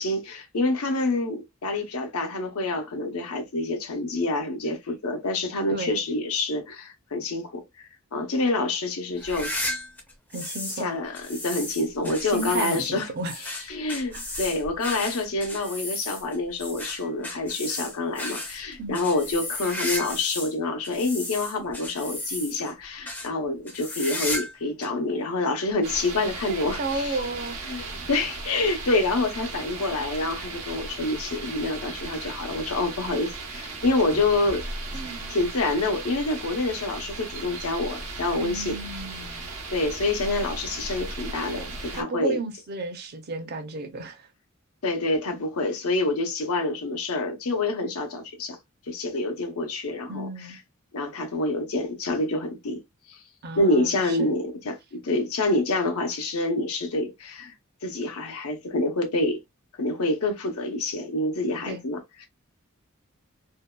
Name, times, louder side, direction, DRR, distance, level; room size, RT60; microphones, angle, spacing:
voice 1, 0.0-9.5 10.8-13.1 13.7-27.2 27.7-34.6 35.3-38.8 39.7-42.4 44.8-48.6 48.9-50.3 50.9-52.8 53.1-53.2 53.6-57.5 57.8-59.4 59.8-62.3, left 2 dB, 80° left, 0.7 m, -27 dB
sound 1, 9.2-10.9 11.2-20.5 20.8-22.7 23.1-23.3 23.7-24.6 24.8-24.9 25.7-25.8 27.0-27.1, left 1 dB, 10° left, 0.4 m, -34 dB
voice 2, 10.3-11.0 12.0-13.6 14.1-14.3 18.8-19.0 26.5-27.6 34.9-35.3 38.4-39.5 41.5-44.3 50.1-50.6 53.4-54.3 61.7-61.8, right 3 dB, 45° right, 0.5 m, -33 dB
sound 2, 25.8-42.0, right 3 dB, 80° right, 0.9 m, -37 dB
2.6 x 2.1 x 2.2 m
head